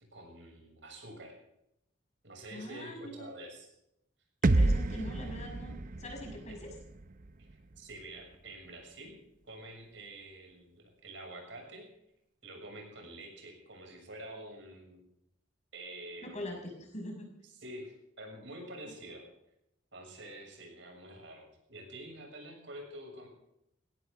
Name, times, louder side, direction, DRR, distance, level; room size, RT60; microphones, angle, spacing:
voice 1, 0.1-1.4 2.2-3.7 6.5-6.6 7.5-9.2 9.4-11.9 12.4-15.0 15.7-16.5 17.6-19.2 19.9-23.3, right 1 dB, 70° right, 1 dB, 7.1 m, -47 dB
voice 2, 2.5-3.3 4.4-5.7 6.0-6.7 16.2-17.3, equal, 35° left, 1 dB, 6.1 m, -42 dB
sound 1, 4.4-8.4, right 2 dB, 45° right, 0.8 m, -31 dB
21.0 x 17.5 x 3.8 m, 0.79 s
head